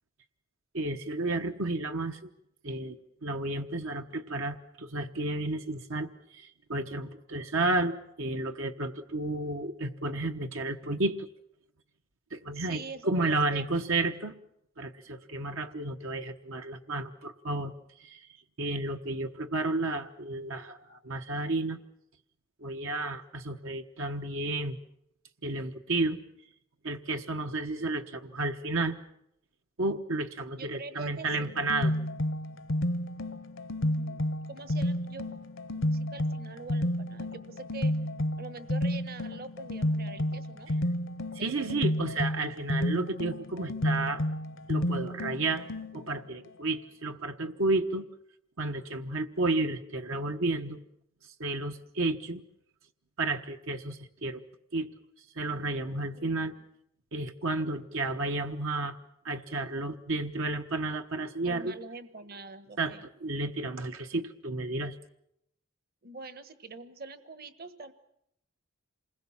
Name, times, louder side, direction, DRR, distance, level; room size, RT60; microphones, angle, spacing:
voice 1, 0.7-2.3 2.6-11.3 12.3-12.8 13.1-14.3 14.8-17.7 18.0-18.3 18.6-21.8 22.6-24.8 25.4-26.2 26.8-29.0 29.8-31.9 41.3-44.2 44.7-45.7 45.9-48.1 48.6-50.8 51.4-52.4 53.2-54.4 54.7-54.9 55.3-56.5 57.1-59.0 59.2-61.7 62.8-62.9 63.2-65.0, right 2 dB, 65° right, 5 dB, 1.2 m, -32 dB
voice 2, 12.5-13.7 30.6-31.5 33.8-35.4 35.7-37.9 38.4-40.7 41.3-41.8 56.1-56.5 61.4-63.1 66.0-67.9, right 4 dB, 45° right, 11 dB, 1.3 m, -44 dB
sound 1, 31.3-46.2, left 1 dB, 60° left, 0.9 m, -31 dB
27.5 x 21.0 x 7.3 m, 0.77 s
head